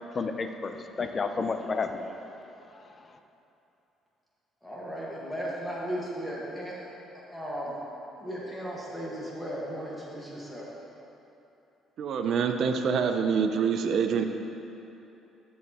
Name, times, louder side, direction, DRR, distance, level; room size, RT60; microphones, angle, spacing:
voice 1, 0.1-2.4, left 4 dB, 35° left, 7 dB, 0.5 m, -31 dB
voice 2, 4.6-6.9 7.3-7.7 8.2-10.7, equal, 5° left, -6 dB, 1.6 m, -36 dB
voice 3, 12.0-14.3, right 6 dB, 60° right, 6 dB, 0.5 m, -26 dB
12.0 x 7.0 x 3.0 m, 2.9 s
cardioid pair, 115°, 0 cm